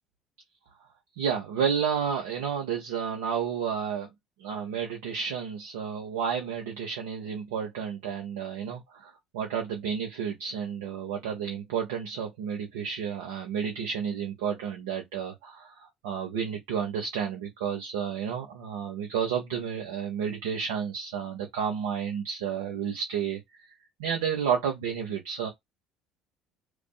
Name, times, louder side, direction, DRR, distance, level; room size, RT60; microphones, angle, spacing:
voice 1, 1.2-4.1 4.4-23.4 24.0-25.5, right 7 dB, 75° right, 0.7 m, -31 dB
2.5 x 2.3 x 2.2 m
hypercardioid pair, 60°, 0 cm